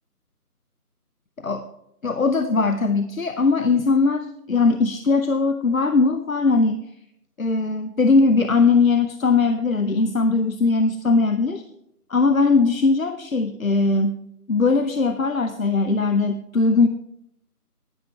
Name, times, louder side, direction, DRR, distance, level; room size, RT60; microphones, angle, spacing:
voice 1, 2.0-6.8 7.4-11.6 12.1-14.2 14.5-16.9, left 4 dB, 60° left, 10 dB, 0.7 m, -20 dB
11.0 x 9.3 x 4.2 m, 0.79 s
figure-of-eight pair, 165°, 47 cm